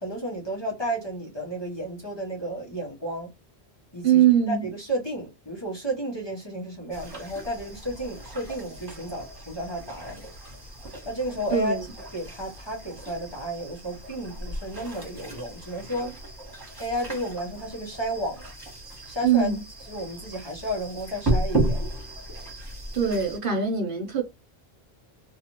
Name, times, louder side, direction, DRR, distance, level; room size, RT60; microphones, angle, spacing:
voice 1, 0.0-3.3 3.9-10.2 11.0-11.8 12.1-16.1 16.8-18.4 19.1-19.5 19.9-21.8, equal, 25° left, 0.9 m, -32 dB
voice 2, 4.0-4.6 11.5-11.8 19.2-19.6 22.9-24.2, right 8 dB, 55° right, 0.9 m, -22 dB
sound 1, 6.9-23.4, right 1 dB, 20° right, 1.3 m, -34 dB
2.7 x 2.4 x 2.9 m
omnidirectional pair, 1.1 m